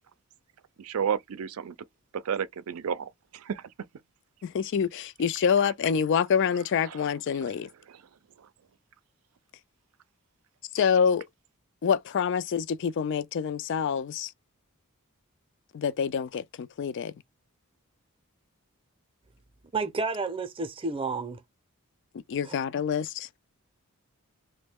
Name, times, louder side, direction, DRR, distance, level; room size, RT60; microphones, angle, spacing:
voice 1, 0.8-1.8 2.1-3.7 6.9-7.0 7.9-8.0, right 7 dB, 75° right, 0.4 m, -32 dB
voice 2, 4.4-7.7 10.7-11.3 11.8-14.3 15.7-17.1 22.3-23.3, left 7 dB, 55° left, 0.3 m, -26 dB
voice 3, 19.7-21.4 22.5-22.6, right 4 dB, 25° right, 0.6 m, -31 dB
3.0 x 2.1 x 3.4 m
head